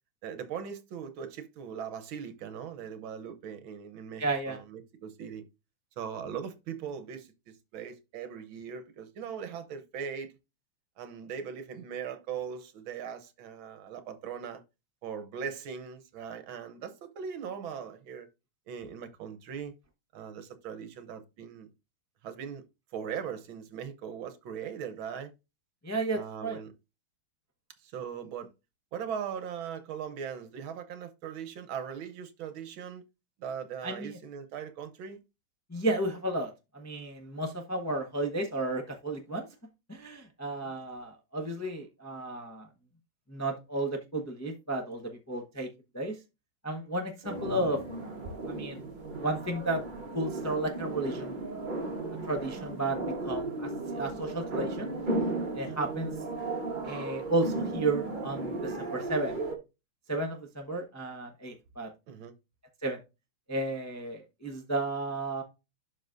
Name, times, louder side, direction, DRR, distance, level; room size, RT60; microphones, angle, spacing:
voice 1, 0.2-5.4 6.0-10.3 11.0-14.6 15.0-18.3 18.7-19.7 20.1-21.7 22.2-22.6 22.9-25.3 26.1-26.7 27.8-28.5 28.9-33.0 33.4-35.2 40.6-40.7 62.1-62.3, right 7 dB, 70° right, 1.6 m, -40 dB
voice 2, 4.2-4.6 25.8-26.6 33.8-34.2 35.7-39.5 39.9-42.7 43.3-45.7 45.9-46.2 46.6-47.8 48.5-48.8 49.2-49.8 50.1-51.4 52.3-53.0 53.2-54.9 55.5-56.1 56.8-59.3 60.1-61.9 62.8-63.0 63.5-65.4, right 2 dB, 15° left, 0.6 m, -33 dB
sound 1, 47.2-59.6, right 2 dB, 25° right, 1.1 m, -35 dB
12.0 x 4.0 x 2.6 m
omnidirectional pair, 2.4 m